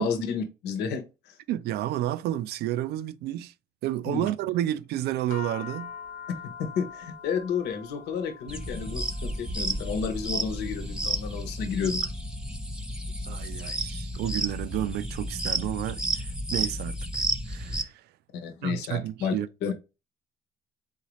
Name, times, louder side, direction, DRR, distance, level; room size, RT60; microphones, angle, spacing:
voice 1, 0.0-1.3 4.1-4.3 6.4-12.1 18.4-19.3 19.6-19.7, left 6 dB, 85° left, 1.0 m, -31 dB
voice 2, 1.5-3.5 3.8-5.9 13.3-18.0 18.6-19.5, right 13 dB, 75° right, 0.4 m, -31 dB
sound 1, 5.3-15.8, left 6 dB, 50° left, 1.0 m, -46 dB
sound 2, 8.5-17.8, right 1 dB, 5° right, 0.8 m, -32 dB
4.1 x 4.0 x 3.0 m
cardioid pair, 110°, 17 cm